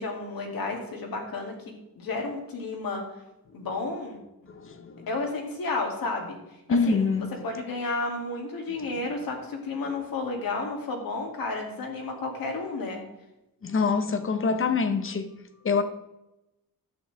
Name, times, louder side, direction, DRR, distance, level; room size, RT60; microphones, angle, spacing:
voice 1, 0.0-1.5 2.0-3.0 3.5-4.2 5.1-6.4 6.7-7.1 7.4-13.0, left 3 dB, 80° left, 2.5 m, -32 dB
voice 2, 4.5-5.1 6.7-7.3 9.8-10.0 13.6-15.3 15.6-15.8, left 4 dB, 35° left, 0.8 m, -25 dB
11.0 x 8.9 x 3.4 m
wide cardioid pair, 175°, 35 cm